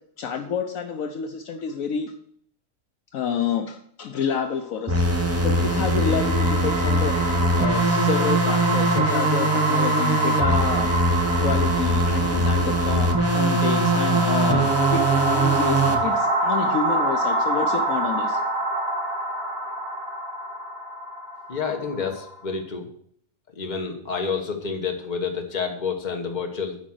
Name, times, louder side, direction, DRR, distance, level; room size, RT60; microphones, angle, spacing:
voice 1, 0.2-2.1 3.1-10.9 11.4-18.4, left 6 dB, 70° left, 6 dB, 1.1 m, -29 dB
sound 1, 4.9-16.0, right 1 dB, 15° right, 0.6 m, -22 dB
sound 2, 5.2-22.4, right 2 dB, 65° right, 2.2 m, -26 dB
voice 2, 21.5-22.8 23.6-26.8, left 5 dB, 35° left, 3 dB, 1.3 m, -29 dB
8.7 x 5.2 x 6.1 m, 0.65 s
omnidirectional pair, 1.5 m